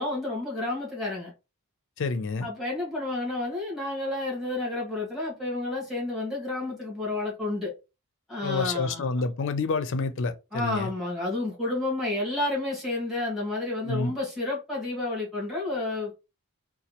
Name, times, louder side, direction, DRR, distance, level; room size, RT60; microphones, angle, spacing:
voice 1, 0.0-1.3 2.4-7.7 8.3-9.1 10.5-16.1, left 2 dB, ahead, 1.6 m, -30 dB
voice 2, 2.0-2.5 8.4-10.9 13.8-14.1, left 3 dB, 55° left, 0.5 m, -28 dB
4.1 x 2.3 x 2.8 m
head